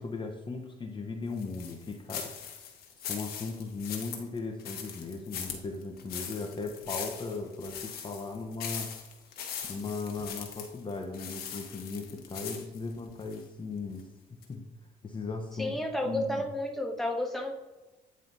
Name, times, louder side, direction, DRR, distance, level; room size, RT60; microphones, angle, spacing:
voice 1, 0.0-2.4 3.0-8.9 9.3-14.7 15.0-16.4, left 3 dB, 30° left, 4 dB, 0.8 m, -38 dB
sound 1, 1.4-13.4 13.9-14.0 14.4-14.5, left 8 dB, 80° left, 1.2 m, -40 dB
voice 2, 15.6-17.5, left 1 dB, ahead, 1 dB, 1.3 m, -31 dB
8.8 x 3.2 x 3.9 m, 1.1 s
cardioid pair, 80°, 16 cm